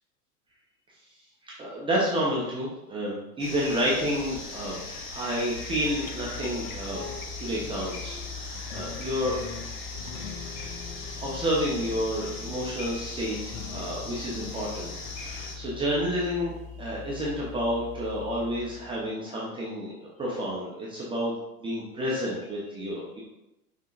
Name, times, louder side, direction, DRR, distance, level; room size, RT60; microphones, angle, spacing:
voice 1, 1.4-4.8 5.1-7.0 7.4-9.4 11.2-16.5 16.8-21.3 21.6-23.2, equal, 10° right, -6 dB, 0.8 m, -30 dB
sound 1, 3.4-15.5, left 3 dB, 35° left, 1.3 m, -39 dB
sound 2, 5.5-19.1, left 5 dB, 65° left, 0.7 m, -41 dB
5.5 x 3.6 x 2.5 m, 0.90 s
figure-of-eight pair, 95°, 46 cm